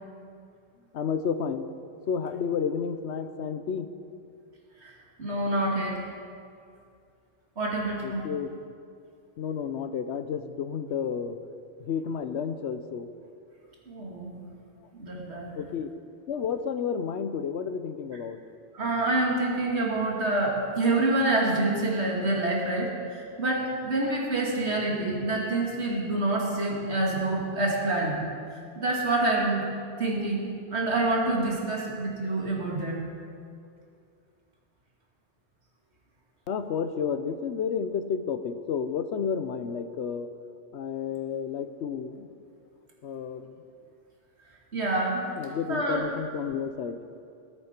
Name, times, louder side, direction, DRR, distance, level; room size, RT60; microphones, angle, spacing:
voice 1, 0.9-1.6 2.1-3.9 8.0-8.5 9.4-11.4 11.8-13.1 15.6-15.9 16.3-18.4 36.5-40.3 40.7-42.3 43.0-43.5 45.4-47.0, left 6 dB, 75° left, 10 dB, 1.0 m, -31 dB
voice 2, 5.2-6.0 7.6-8.3 13.9-14.4 15.0-15.5 18.7-28.2 28.5-29.7 30.0-33.0 44.7-45.2 45.7-46.0, right 2 dB, 70° right, -2 dB, 2.5 m, -27 dB
20.5 x 8.9 x 4.4 m, 2.4 s
omnidirectional pair, 1.2 m